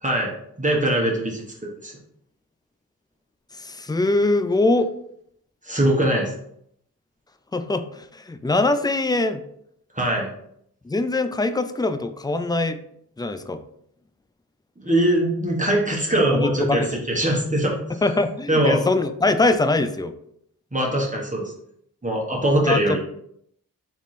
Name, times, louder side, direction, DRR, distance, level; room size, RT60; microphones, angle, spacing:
voice 1, 0.0-0.3 0.6-1.4 1.8-1.9 5.7-6.3 9.9-10.3 14.8-17.8 18.5-18.8 20.7-21.5 22.0-23.0, right 1 dB, 20° right, -2 dB, 1.3 m, -21 dB
voice 2, 3.6-4.9 7.5-9.4 10.9-12.8 13.2-13.6 16.1-17.0 18.0-20.1 22.6-23.0, left 2 dB, 10° left, 9 dB, 0.4 m, -22 dB
3.6 x 3.0 x 4.1 m, 0.71 s
cardioid pair, 45°, 37 cm